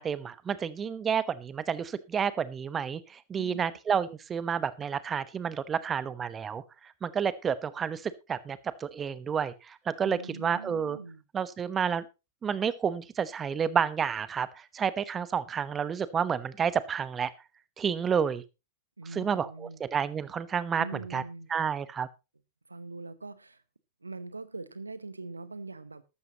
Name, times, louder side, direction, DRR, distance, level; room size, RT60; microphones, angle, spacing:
voice 1, 0.0-6.6 7.0-11.0 11.3-12.0 12.4-17.3 17.8-18.4 19.1-21.2 21.5-22.1, right 7 dB, 25° right, 1.0 m, -30 dB
voice 2, 3.4-3.7 10.0-11.2 19.0-19.8 20.8-21.5 22.7-23.6 24.0-26.0, right 3 dB, 90° right, 0.9 m, -42 dB
14.0 x 12.0 x 2.9 m
figure-of-eight pair, 95°, 0 cm